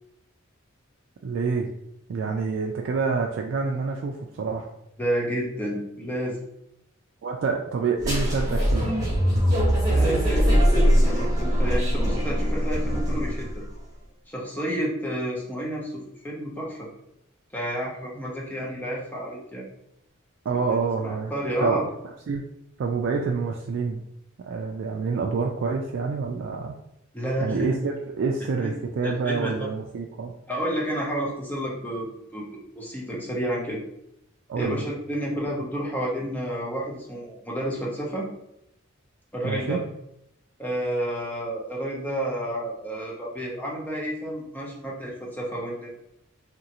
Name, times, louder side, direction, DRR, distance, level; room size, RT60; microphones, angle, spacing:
voice 1, 1.2-1.7 2.1-4.7 7.2-8.9 20.5-21.3 21.6-21.9 22.3-22.5 22.8-24.0 24.4-26.7 27.4-30.3 34.5-34.8 39.4-39.8, right 4 dB, 60° right, 1 dB, 0.3 m, -27 dB
voice 2, 5.0-6.5 9.9-13.6 14.3-16.9 17.5-19.7 20.5-21.8 27.1-27.8 28.6-28.7 29.0-29.7 30.5-32.5 32.8-33.8 34.6-38.3 39.3-39.8 40.6-45.9, equal, 10° left, -3 dB, 0.6 m, -30 dB
sound 1, 8.0-13.6, equal, 20° right, 1.0 m, -22 dB
3.0 x 2.5 x 2.9 m, 0.78 s
head